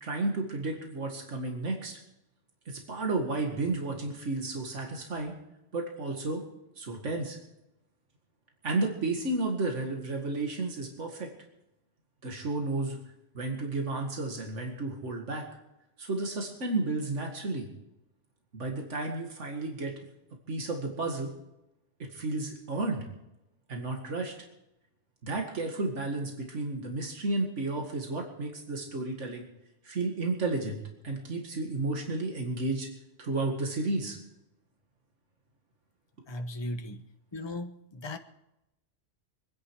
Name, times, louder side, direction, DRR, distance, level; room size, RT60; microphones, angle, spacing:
voice 1, 0.0-2.0 2.7-5.3 5.7-6.4 6.8-7.4 8.6-11.3 12.2-13.0 13.3-15.5 16.0-17.7 18.5-20.0 20.5-21.3 22.0-23.1 23.7-24.3 25.2-29.5 29.8-32.9 33.2-34.2, right 2 dB, 80° right, 2 dB, 2.3 m, -32 dB
voice 2, 36.3-37.0 37.3-38.2, left 1 dB, 25° left, 7 dB, 1.0 m, -37 dB
25.5 x 10.5 x 4.7 m, 0.90 s
omnidirectional pair, 1.2 m